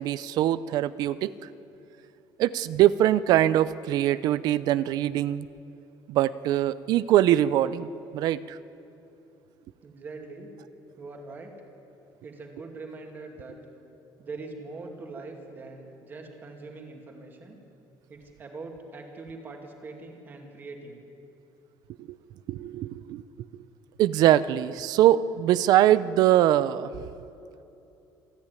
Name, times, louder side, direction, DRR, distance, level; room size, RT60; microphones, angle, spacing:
voice 1, 0.0-1.5 2.4-5.5 6.1-8.6 22.0-22.2 22.5-23.2 24.0-26.9, right 12 dB, 55° right, 16 dB, 0.5 m, -23 dB
voice 2, 9.8-10.5 11.0-11.5 12.2-13.6 14.2-17.6 18.1-21.0, right 3 dB, 25° right, 2 dB, 2.5 m, -42 dB
27.5 x 10.5 x 9.7 m, 2.8 s
cardioid pair, 175°, 8 cm